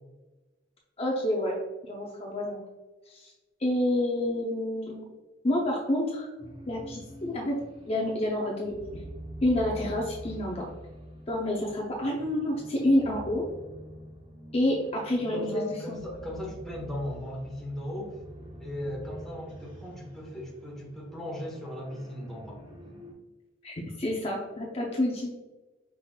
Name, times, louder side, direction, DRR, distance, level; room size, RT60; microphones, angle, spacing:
voice 1, 1.0-1.6 1.8-2.6 3.1-3.3 3.6-5.1 5.4-6.3 6.7-7.6 7.9-9.0 9.4-10.7 11.3-13.4 14.5-16.0 23.6-25.3, left 1 dB, 30° left, -2 dB, 0.6 m, -28 dB
sound 1, 6.4-23.1, right 1 dB, 25° right, 0.8 m, -46 dB
voice 2, 15.3-18.2 18.6-22.6, left 1 dB, ahead, -4 dB, 1.2 m, -37 dB
5.6 x 3.8 x 2.3 m, 1.2 s
head